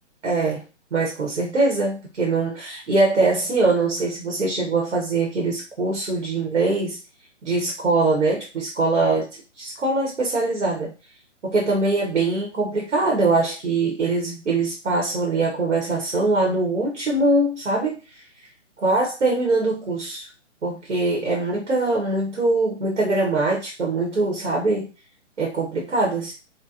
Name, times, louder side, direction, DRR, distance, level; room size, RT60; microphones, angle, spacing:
voice 1, 0.2-0.6 0.9-7.0 7.4-9.3 9.6-10.9 11.4-18.0 18.8-20.3 20.6-24.9 25.4-26.3, right 3 dB, 75° right, -1 dB, 1.1 m, -22 dB
2.8 x 2.1 x 2.4 m, 0.31 s
figure-of-eight pair, 135°, 36 cm